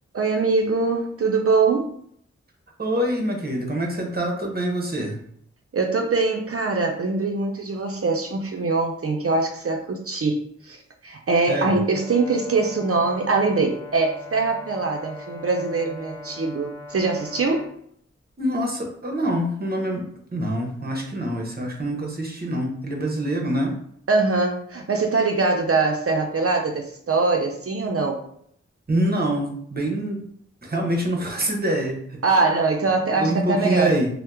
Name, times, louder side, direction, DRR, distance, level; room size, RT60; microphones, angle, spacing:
voice 1, 0.1-1.9 5.7-10.8 11.0-17.7 24.1-28.2 32.2-33.9, right 3 dB, 50° right, 2 dB, 0.5 m, -23 dB
voice 2, 2.8-5.2 11.5-11.8 18.4-20.0 20.3-23.8 28.9-30.2 30.6-32.2 33.2-34.1, right 1 dB, 35° right, 1 dB, 0.8 m, -25 dB
Brass instrument, 11.9-17.7, left 2 dB, 15° left, 0.8 m, -40 dB
2.8 x 2.1 x 3.4 m, 0.66 s
cardioid pair, 40°, 29 cm